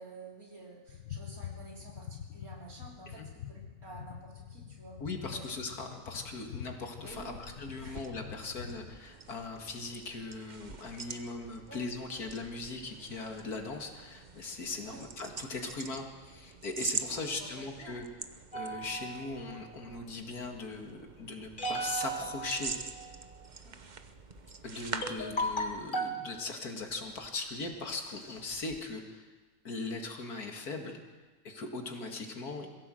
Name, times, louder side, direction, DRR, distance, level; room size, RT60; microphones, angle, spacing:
voice 1, 0.0-5.0 5.3-5.5 7.0-7.4 7.8-8.3 11.7-11.8 14.8-15.0 17.1-18.0 23.6-23.8, right 2 dB, 70° right, -2 dB, 3.9 m, -50 dB
sound 1, 0.9-9.0, left 9 dB, 70° left, 1.3 m, -46 dB
voice 2, 5.0-18.1 18.5-22.7 24.6-29.3 29.6-31.0 31.4-32.7, left 3 dB, 90° left, 3 dB, 2.6 m, -39 dB
sound 2, 7.0-25.9, right 5 dB, 35° right, 0.9 m, -45 dB
sound 3, 18.5-19.8 21.6-23.3 24.4-24.5 25.0-26.3 27.0-27.3 27.7-27.8 28.1-28.8, right 1 dB, 35° left, 1.7 m, -37 dB
22.0 x 16.0 x 7.7 m, 1.3 s
omnidirectional pair, 1.6 m